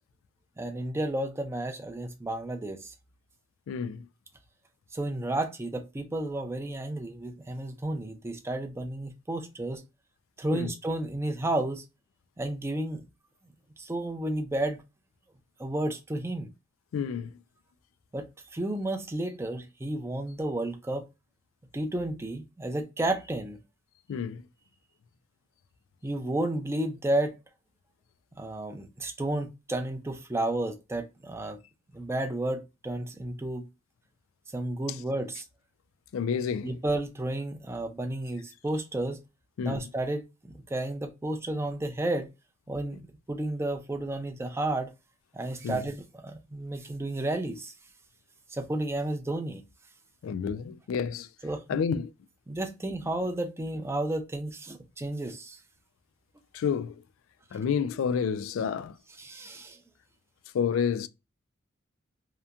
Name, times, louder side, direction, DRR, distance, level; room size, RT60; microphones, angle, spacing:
voice 1, 0.6-2.9 4.9-9.8 10.4-11.8 12.4-13.0 13.8-14.8 15.6-16.5 18.1-21.1 21.7-23.6 26.0-27.4 28.4-31.6 31.9-33.7 34.5-35.4 36.6-39.2 39.6-42.3 42.7-43.0 43.3-44.9 45.3-47.7 48.5-49.6 51.4-51.8 52.5-55.6 59.2-59.8, right 1 dB, 15° right, 0.4 m, -32 dB
voice 2, 3.7-4.1 10.5-10.7 16.9-17.4 24.1-24.5 36.1-36.8 39.6-39.9 45.6-45.9 50.2-51.3 51.7-52.1 56.5-57.0 57.5-59.0 60.5-61.1, left 7 dB, 80° left, 0.3 m, -29 dB
2.8 x 2.1 x 2.3 m
head